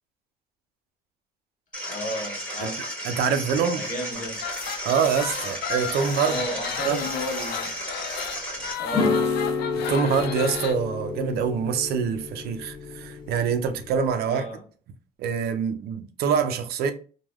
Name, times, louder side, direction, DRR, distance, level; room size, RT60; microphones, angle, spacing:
sound 1, 1.7-8.7, equal, 5° left, 1.2 m, -34 dB
voice 1, 1.9-2.8 3.7-4.4 6.3-7.8 8.8-9.2 14.2-14.6, equal, 50° left, 1.1 m, -33 dB
voice 2, 3.0-3.9 4.8-6.4 6.9-7.0 9.9-14.4 15.2-16.9, right 6 dB, 70° right, 0.4 m, -25 dB
sound 2, 4.3-10.8, left 8 dB, 75° left, 0.4 m, -33 dB
sound 3, 8.9-14.1, left 4 dB, 30° left, 0.7 m, -29 dB
3.2 x 2.1 x 2.2 m
cardioid pair, 110°, 17 cm